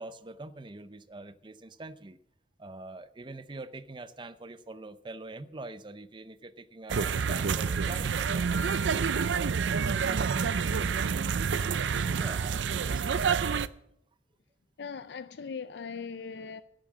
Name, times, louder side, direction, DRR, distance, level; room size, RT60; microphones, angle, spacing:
voice 1, 0.0-2.2 2.6-8.7 11.9-13.6, right 2 dB, 25° right, 0.5 m, -44 dB
sound 1, 6.9-13.7, right 6 dB, 85° right, 0.5 m, -28 dB
voice 2, 14.8-16.6, left 5 dB, 65° left, 0.4 m, -39 dB
11.5 x 9.2 x 7.4 m
head